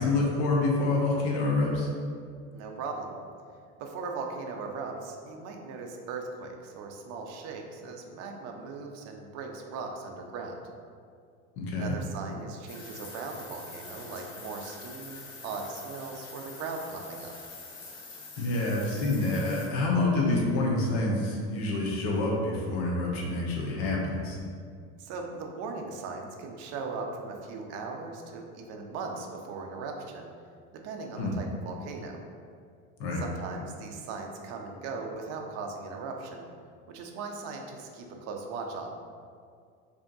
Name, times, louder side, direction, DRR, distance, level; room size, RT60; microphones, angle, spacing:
voice 1, 0.0-1.9 11.6-11.9 18.4-24.4 31.2-31.3 33.0-33.2, left 2 dB, 55° left, -2 dB, 0.7 m, -27 dB
voice 2, 2.5-3.1 3.8-10.6 11.8-17.3 25.0-30.3 30.7-32.2 33.1-36.5 36.9-38.9, right 4 dB, 45° right, 2 dB, 0.6 m, -38 dB
sound 1, 12.7-19.7, left 3 dB, 75° left, 1.3 m, -45 dB
3.4 x 2.7 x 3.8 m, 2.2 s
supercardioid pair, 135°, 34 cm